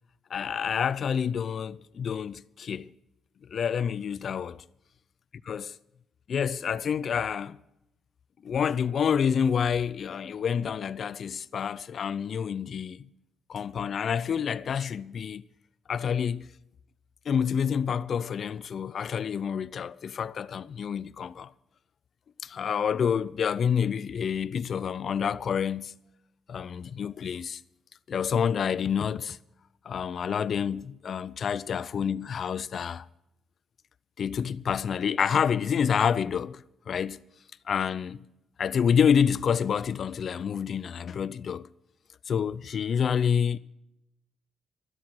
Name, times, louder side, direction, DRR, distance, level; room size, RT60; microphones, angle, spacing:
voice 1, 0.3-2.9 3.4-4.6 5.5-5.8 6.3-7.6 8.4-13.0 13.5-15.4 15.9-16.5 17.3-21.5 22.4-26.0 26.5-27.6 28.1-29.4 29.8-33.1 34.2-37.2 37.7-38.2 38.6-41.7 42.3-43.6, left 7 dB, 55° left, 0.5 m, -28 dB
12.5 x 12.5 x 6.0 m
cardioid pair, 90°, 0 cm